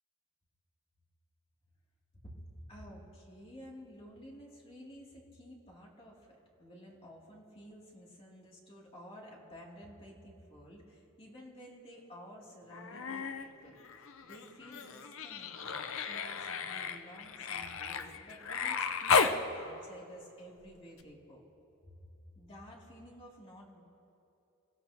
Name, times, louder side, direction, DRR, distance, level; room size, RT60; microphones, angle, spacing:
voice 1, 2.2-21.4 21.9-22.0 22.3-23.8, equal, 25° left, -3 dB, 2.9 m, -52 dB
Human voice, 12.7-13.5 13.8-19.4 21.0-21.1, left 5 dB, 65° left, 0.7 m, -34 dB
28.5 x 16.0 x 3.0 m, 2.8 s
head